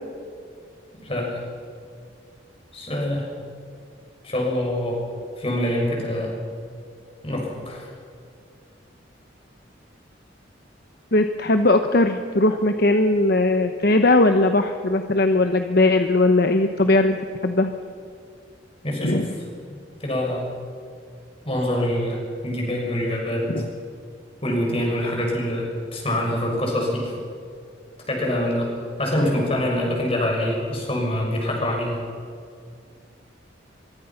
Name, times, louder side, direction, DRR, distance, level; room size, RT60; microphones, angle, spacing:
voice 1, 1.0-1.4 2.7-3.3 4.2-5.1 5.4-6.3 7.2-7.9 18.8-19.3 20.0-20.5 21.4-23.6 24.4-27.2 28.1-32.0, left 1 dB, 30° left, 0 dB, 6.3 m, -25 dB
voice 2, 11.1-17.2 17.4-17.7 19.0-19.3 23.5-23.7, left 2 dB, 55° left, 7 dB, 1.1 m, -19 dB
24.0 x 23.5 x 5.9 m, 2.2 s
head